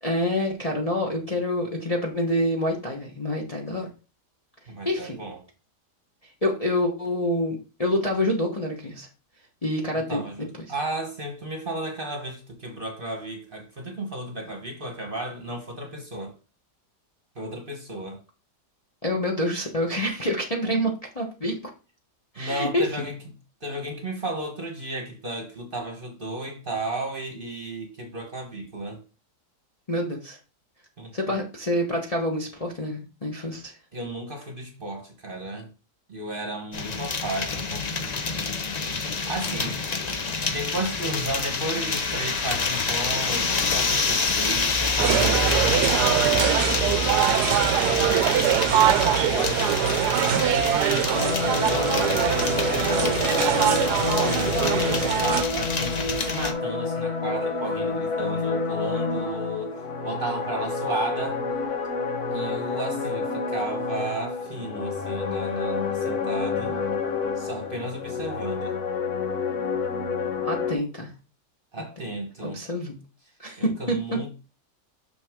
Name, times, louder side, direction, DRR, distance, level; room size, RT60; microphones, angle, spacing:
voice 1, 0.0-3.9 4.8-5.2 6.4-9.1 9.6-10.2 19.0-21.6 22.3-22.8 29.9-30.4 31.1-33.7 70.4-71.1 72.4-72.9 73.4-74.0, left 1 dB, 25° left, 0.9 m, -27 dB
voice 2, 4.7-5.4 9.9-16.4 17.3-18.2 20.6-20.8 22.4-23.2 23.6-29.0 31.0-31.4 33.9-35.7 36.1-37.9 39.1-40.0 40.5-53.7 54.4-61.4 62.3-66.8 67.4-68.8 71.7-72.6 73.6-74.3, right 2 dB, 35° right, 1.2 m, -34 dB
sound 1, 36.7-56.5, left 4 dB, 75° left, 0.3 m, -27 dB
sound 2, 45.0-55.4, right 10 dB, 75° right, 1.1 m, -23 dB
sound 3, 51.1-70.7, left 4 dB, 60° left, 1.6 m, -28 dB
6.3 x 6.0 x 3.6 m
omnidirectional pair, 1.8 m